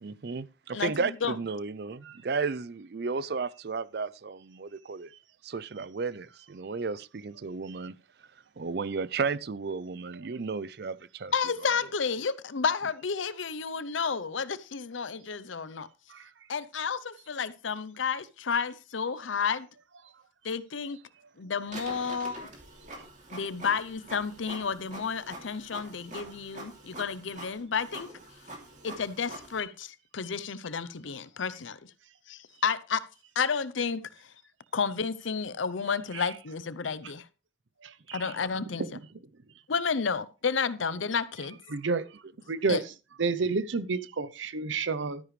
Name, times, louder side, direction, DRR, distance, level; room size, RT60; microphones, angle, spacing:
voice 1, 0.0-5.1 5.4-8.0 8.6-11.3, right 4 dB, 55° right, 0.5 m, -33 dB
voice 2, 0.7-1.3 11.3-15.9 16.5-19.7 20.4-21.0 21.4-22.5 23.3-28.1 28.8-31.8 32.3-33.0 33.4-34.1 34.7-37.3 38.1-38.9 39.7-41.6 42.7-42.8, left 5 dB, 90° left, 0.7 m, -31 dB
Printer, 21.7-29.6, right 1 dB, 40° right, 2.8 m, -45 dB
voice 3, 41.7-42.0 42.5-42.8 43.2-45.2, right 4 dB, 85° right, 0.8 m, -29 dB
13.0 x 10.0 x 3.3 m
head